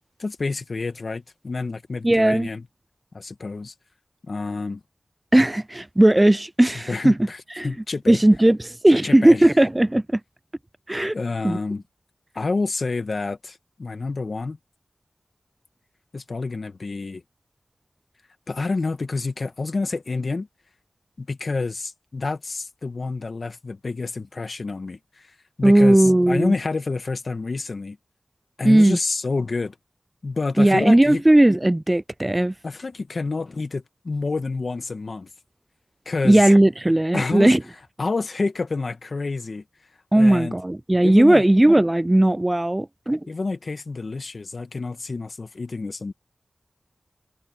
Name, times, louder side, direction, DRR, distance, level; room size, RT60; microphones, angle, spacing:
voice 1, 0.2-2.7 3.1-3.7 4.3-4.8 6.9-8.2 9.0-9.5 11.1-11.8 12.4-14.6 16.1-17.2 18.5-20.5 21.2-28.0 28.6-29.8 30.2-31.2 32.6-35.3 36.1-36.5 37.1-37.5 38.0-39.6 40.2-40.5 41.0-41.4 43.3-46.1, left 3 dB, 60° left, 1.6 m, -28 dB
voice 2, 2.0-2.5 5.3-7.2 7.6-7.7 8.1-10.2 10.9-11.1 11.4-11.6 25.6-26.5 28.6-29.0 30.6-32.5 36.2-37.6 40.1-43.2, right 1 dB, 20° right, 0.4 m, -17 dB
wide cardioid pair, 70°, 0 cm